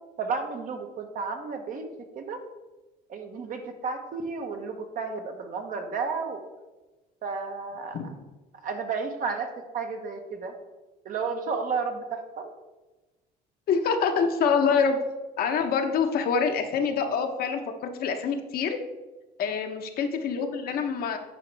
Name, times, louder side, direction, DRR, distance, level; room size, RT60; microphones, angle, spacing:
voice 1, 0.2-1.9 2.1-2.4 3.1-6.4 7.2-8.0 8.6-10.5 11.0-12.5 19.4-19.6, right 5 dB, 55° right, 5 dB, 1.1 m, -32 dB
voice 2, 13.7-15.0 15.4-17.6 17.9-18.8 19.4-21.2, left 6 dB, 65° left, 5 dB, 0.9 m, -25 dB
9.2 x 4.8 x 3.4 m, 1.1 s
cardioid pair, 110°, 17 cm